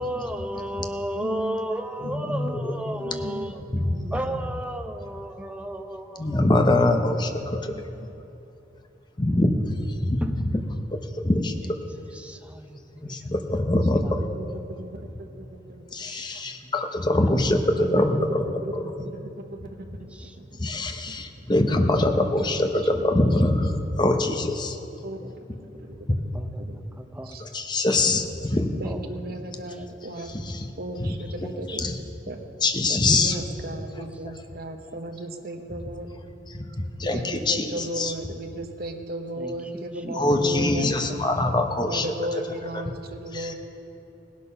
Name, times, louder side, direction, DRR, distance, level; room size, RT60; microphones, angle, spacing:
voice 1, 0.0-3.6 4.1-6.5 10.2-10.4 12.1-13.2 14.0-14.2 14.5-15.6 16.1-16.7 20.1-21.5 25.2-25.3 25.7-25.8 26.3-26.7 27.0-27.4 28.8-29.1 39.4-39.6 40.0-40.5, equal, 5° right, 6 dB, 0.6 m, -34 dB
voice 2, 1.1-1.7 2.0-2.6 3.0-4.5 7.4-8.1 13.3-13.7 14.3-15.8 17.8-18.3 18.6-20.6 21.1-21.2 22.4-23.2 25.0-25.3 25.8-26.0 26.6-27.0 27.2-27.4 28.8-30.4 30.8-31.9 32.3-32.4 33.1-36.1 37.0-41.3 41.9-43.5, right 1 dB, 55° right, 5 dB, 1.0 m, -36 dB
voice 3, 2.0-3.0 3.7-3.9 6.2-7.7 9.2-10.5 10.9-11.0 11.2-11.5 13.0-14.2 15.9-18.6 20.6-24.8 26.1-26.2 27.4-28.7 30.3-30.7 31.0-31.1 31.7-31.9 32.6-33.4 36.5-38.1 40.1-42.1 43.3-43.5, left 2 dB, 25° left, 5 dB, 0.8 m, -23 dB
18.0 x 8.5 x 5.7 m, 2.8 s
head